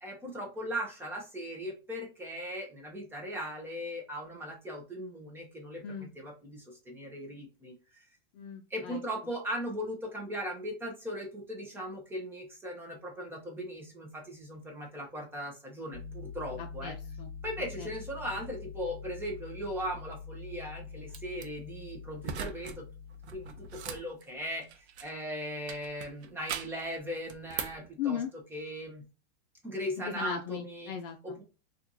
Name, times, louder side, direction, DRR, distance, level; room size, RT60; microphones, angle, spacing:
voice 1, 0.0-7.7 8.7-16.9 17.4-22.8 23.3-28.2 28.5-29.0 29.6-30.9 31.2-31.4, equal, 5° right, 0 dB, 0.7 m, -38 dB
voice 2, 8.3-9.0 16.6-17.3 17.8-17.9 28.0-28.3 30.0-31.4, left 7 dB, 55° left, 4 dB, 0.6 m, -37 dB
sound 1, 15.9-23.9, left 5 dB, 40° right, 1.2 m, -45 dB
sound 2, 21.1-21.5 22.2-22.8 23.1-25.2 25.7-26.9 27.3-27.9, right 7 dB, 85° right, 0.7 m, -40 dB
4.3 x 2.5 x 2.6 m, 0.32 s
supercardioid pair, 160°, 32 cm